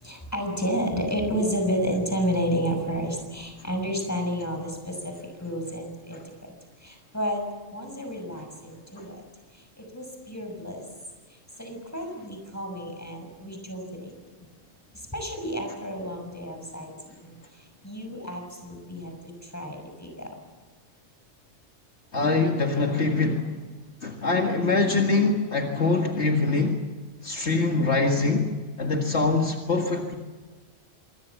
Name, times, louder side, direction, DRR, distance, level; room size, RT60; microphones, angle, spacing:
voice 1, 0.0-5.1 5.4-6.5 6.8-7.4 7.7-9.2 9.5-10.8 11.6-14.1 14.4-14.5 15.1-16.9 17.2-17.4 17.8-19.1 19.4-20.4, equal, 10° left, 3 dB, 6.3 m, -31 dB
voice 2, 22.1-23.6 24.0-26.8 27.2-30.2, left 3 dB, 60° left, 2 dB, 2.2 m, -24 dB
26.0 x 22.5 x 7.3 m, 1.4 s
omnidirectional pair, 1.3 m